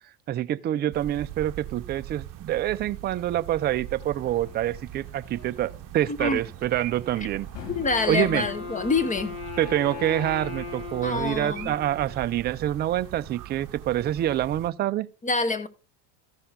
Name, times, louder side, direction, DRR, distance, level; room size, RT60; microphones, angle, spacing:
voice 1, 0.3-7.5 8.1-8.5 9.6-15.1, right 12 dB, 25° right, 0.4 m, -26 dB
sound 1, 0.9-14.7, right 14 dB, 45° right, 0.9 m, -41 dB
sound 2, 4.0-9.3, left 5 dB, 85° left, 2.0 m, -48 dB
voice 2, 6.1-6.4 7.7-9.3 11.0-11.7 15.2-15.7, left 4 dB, 15° left, 1.1 m, -26 dB
Wind instrument woodwind instrument, 7.6-12.5, left 6 dB, 50° left, 4.3 m, -38 dB
14.0 x 5.7 x 3.7 m
hypercardioid pair, 100°, 47 cm